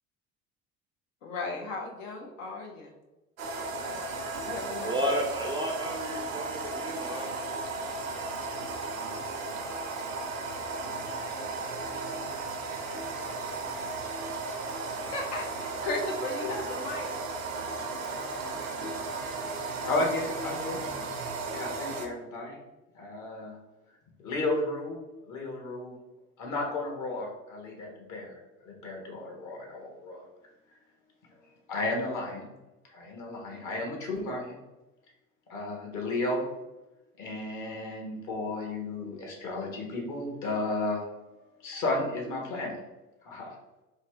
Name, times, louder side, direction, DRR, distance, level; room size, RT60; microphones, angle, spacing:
voice 1, 1.2-2.9 3.9-4.0 4.4-5.0 14.9-17.1, left 2 dB, 70° left, 0 dB, 0.8 m, -36 dB
sound 1, 3.4-22.1, right 3 dB, 85° right, 0.6 m, -35 dB
voice 2, 4.8-7.4 11.3-12.1, right 1 dB, 15° right, 0 dB, 0.4 m, -33 dB
voice 3, 19.8-20.8 21.5-22.6 22.9-23.6 24.2-25.0 25.3-25.9 26.4-28.4 28.6-30.2 31.7-32.5 32.9-34.6 35.5-36.5 37.2-41.2 41.6-42.8 43.2-43.5, left 2 dB, 50° left, -1 dB, 1.3 m, -33 dB
3.3 x 2.7 x 3.3 m, 1.0 s
figure-of-eight pair, 60°, 40 cm